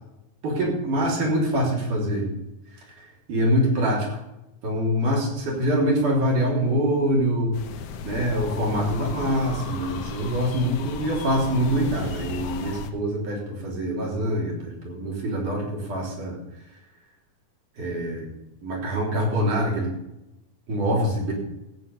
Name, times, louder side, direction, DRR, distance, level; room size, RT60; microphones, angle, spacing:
voice 1, 0.4-2.3 2.8-4.2 4.6-7.5 8.0-16.4 17.8-18.3 18.6-19.9 20.7-21.3, equal, 85° right, -2 dB, 5.0 m, -24 dB
sound 1, 7.5-12.9, left 5 dB, 65° left, 1.7 m, -34 dB
14.5 x 8.5 x 5.5 m, 0.91 s
omnidirectional pair, 3.5 m